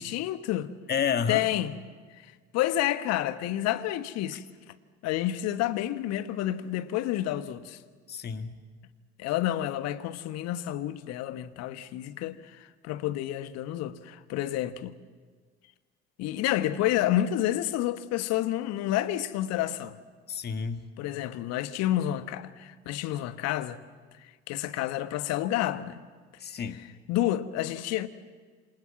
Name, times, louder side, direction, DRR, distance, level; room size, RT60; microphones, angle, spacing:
voice 1, 0.0-0.7 1.3-1.8 2.5-4.4 5.0-7.8 9.2-14.9 16.2-20.0 21.0-23.8 24.5-26.0 27.1-28.1, left 13 dB, 50° left, 1.5 m, -29 dB
voice 2, 0.9-1.5 8.1-8.5 20.3-20.8 26.4-26.9, left 7 dB, 30° left, 1.9 m, -30 dB
27.5 x 27.0 x 7.3 m
figure-of-eight pair, 65°, 33 cm